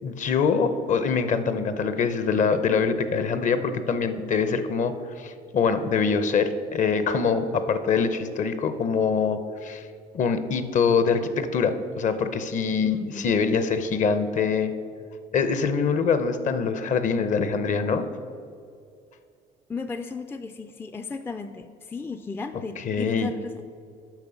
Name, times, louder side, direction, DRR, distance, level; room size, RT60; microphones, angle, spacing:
voice 1, 0.0-9.8 10.1-14.7 15.3-18.0 22.9-23.3, left 5 dB, 45° left, 11 dB, 0.7 m, -24 dB
voice 2, 12.8-13.3 19.7-23.6, left 4 dB, 15° left, 8 dB, 0.3 m, -35 dB
9.0 x 5.5 x 6.9 m, 2.4 s
cardioid pair, 110°, 17 cm